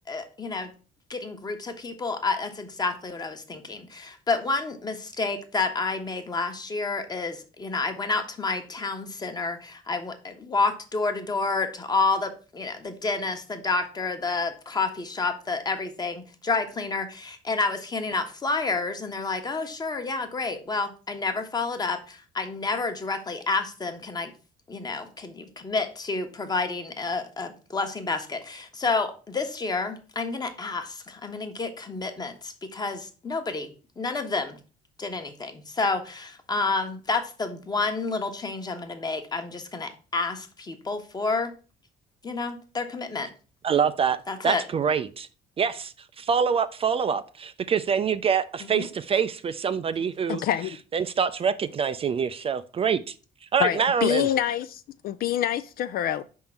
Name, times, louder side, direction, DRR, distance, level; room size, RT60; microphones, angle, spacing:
voice 1, 0.1-0.7 1.1-24.3 24.7-33.7 34.0-34.6 35.0-41.5 42.2-43.3 44.3-44.6 48.6-48.9, left 3 dB, 25° left, 1.1 m, -29 dB
voice 2, 43.6-44.2 44.4-45.3 45.6-50.4 50.9-53.1 53.5-54.3, right 7 dB, 35° right, 0.4 m, -25 dB
voice 3, 50.3-50.8 53.6-56.2, left 11 dB, 60° left, 0.4 m, -26 dB
5.2 x 3.7 x 5.8 m
cardioid pair, 110°, 17 cm